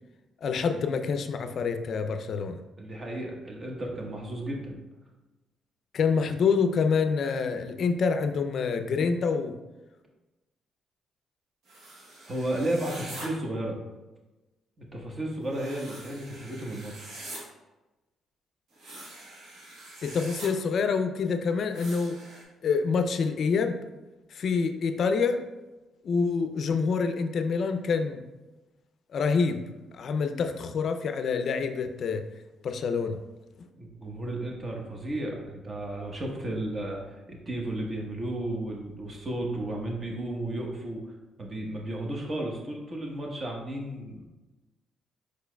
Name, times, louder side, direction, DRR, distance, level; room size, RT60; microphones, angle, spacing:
voice 1, 0.4-2.6 5.9-9.5 20.0-22.2 22.6-23.8 24.3-25.4 26.0-28.2 29.1-29.7 29.9-32.2 32.6-33.2, left 5 dB, 60° left, 8 dB, 0.4 m, -26 dB
voice 2, 2.8-4.8 12.3-13.8 14.8-17.1 33.8-41.0 41.4-44.3, right 1 dB, 35° right, 0 dB, 1.1 m, -33 dB
sound 1, 11.7-13.3 15.5-17.4 18.7-20.5 21.7-22.4, right 2 dB, 80° right, 1.2 m, -44 dB
4.9 x 4.5 x 2.2 m, 1.1 s
cardioid pair, 90°, 0 cm